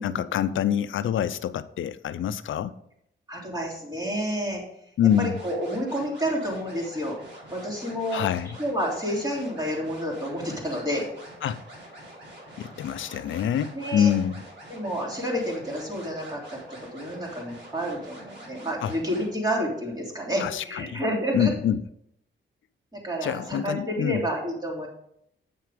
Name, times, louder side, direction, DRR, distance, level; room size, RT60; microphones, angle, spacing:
voice 1, 0.0-2.8 5.0-5.4 8.1-8.6 11.4-11.6 12.6-14.4 18.8-18.9 20.4-21.0 21.3-21.8 23.2-24.2, left 9 dB, 80° left, 0.5 m, -26 dB
voice 2, 3.3-4.6 5.2-7.2 7.5-8.2 8.6-11.1 13.7-14.1 14.7-16.6 16.9-21.5 22.9-24.9, equal, 20° right, 3.4 m, -29 dB
sound 1, 5.1-19.3, equal, 60° right, 4.3 m, -45 dB
8.7 x 6.6 x 5.0 m
wide cardioid pair, 120°, 20 cm